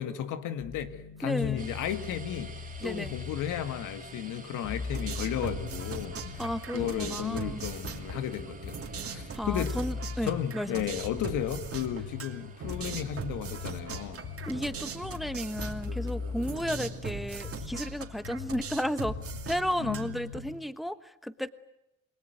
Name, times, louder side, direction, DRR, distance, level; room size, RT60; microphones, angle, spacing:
voice 1, 0.0-2.6 2.8-6.2 6.7-8.8 9.1-9.8 10.2-14.2 19.8-20.1, left 10 dB, 90° left, 1.9 m, -34 dB
sound 1, 0.6-20.5, left 5 dB, 75° left, 6.9 m, -41 dB
voice 2, 1.2-1.7 2.8-3.1 6.4-7.6 9.0-11.0 14.4-19.2 19.5-21.5, equal, ahead, 1.2 m, -33 dB
sound 2, 1.6-20.6, right 4 dB, 25° right, 2.6 m, -52 dB
sound 3, 4.9-20.4, right 7 dB, 50° right, 2.8 m, -41 dB
28.5 x 21.0 x 9.3 m
cardioid pair, 90°, 30 cm